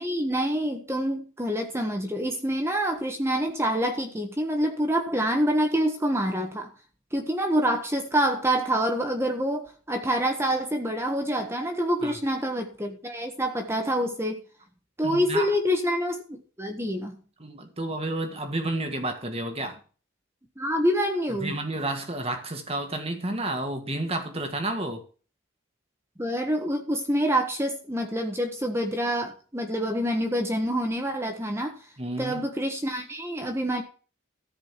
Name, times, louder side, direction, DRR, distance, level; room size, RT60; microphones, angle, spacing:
voice 1, 0.0-6.7 7.1-14.4 15.0-17.2 20.6-21.6 26.2-31.8 32.2-33.8, equal, 10° right, 1.4 m, -26 dB
voice 2, 15.0-15.5 17.4-19.8 21.4-25.0 32.0-32.4, right 2 dB, 30° right, 1.8 m, -31 dB
14.0 x 5.1 x 7.5 m
head